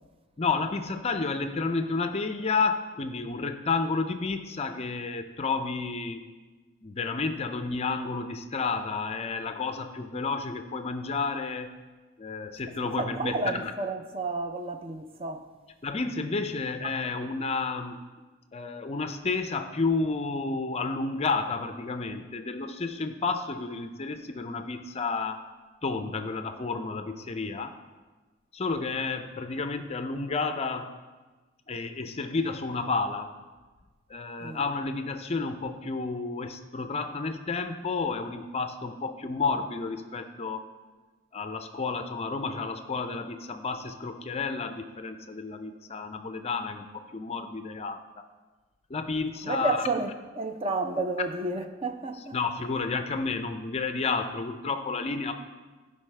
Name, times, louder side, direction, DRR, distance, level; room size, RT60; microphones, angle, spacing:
voice 1, 0.4-6.2 6.8-11.7 12.2-13.7 15.8-18.1 18.5-25.4 25.8-27.7 28.5-30.9 31.7-33.3 34.1-40.6 41.3-48.0 48.9-49.9 52.3-55.3, left 4 dB, 30° left, 0.4 m, -31 dB
voice 2, 13.0-15.5 34.4-34.6 49.4-52.4, right 3 dB, 25° right, 0.5 m, -31 dB
14.5 x 5.3 x 3.3 m
head